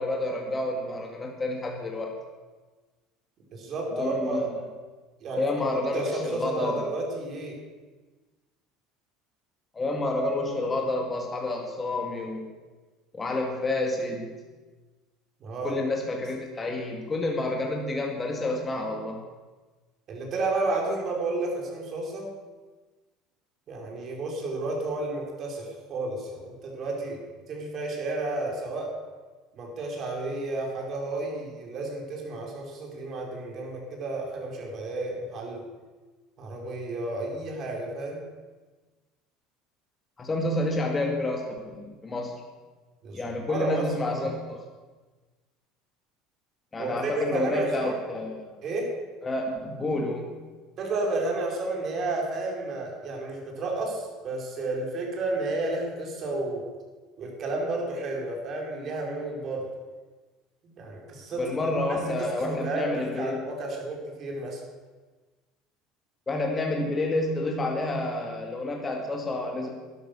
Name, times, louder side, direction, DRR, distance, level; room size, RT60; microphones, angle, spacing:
voice 1, 0.0-2.1 3.9-4.6 5.3-6.8 9.7-12.5 13.1-14.3 15.6-19.2 40.2-42.4 43.1-44.6 46.7-48.6 49.2-50.3 61.4-63.4 66.3-69.7, left 2 dB, 25° left, 1 dB, 2.2 m, -29 dB
voice 2, 3.5-4.4 5.2-5.4 5.9-7.6 15.4-15.8 20.1-22.4 23.7-27.2 27.5-29.0 29.5-35.7 36.4-38.2 43.0-44.3 46.8-47.9 48.6-48.9 50.8-56.7 57.2-59.7 60.6-64.6, right 2 dB, 50° right, 0 dB, 4.5 m, -32 dB
11.5 x 11.5 x 6.6 m, 1.3 s
supercardioid pair, 100°, 0 cm